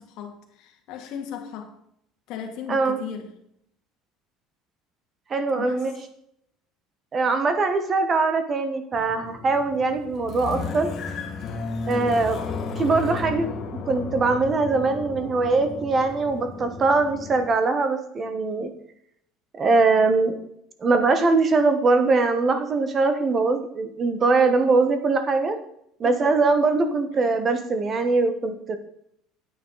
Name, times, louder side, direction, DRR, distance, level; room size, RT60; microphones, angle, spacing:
voice 1, 0.0-1.7 2.3-3.3 5.5-5.9 26.0-26.3, left 8 dB, 60° left, 4 dB, 1.9 m, -36 dB
voice 2, 5.3-5.9 7.1-10.9 11.9-12.4 12.8-13.5 13.9-18.7 19.5-20.4 20.8-25.6 26.0-28.8, right 3 dB, 25° right, 9 dB, 1.1 m, -22 dB
sound 1, 8.9-17.5, left 4 dB, 35° left, 1.7 m, -34 dB
9.3 x 9.0 x 4.0 m, 0.73 s
cardioid pair, 150°, 0 cm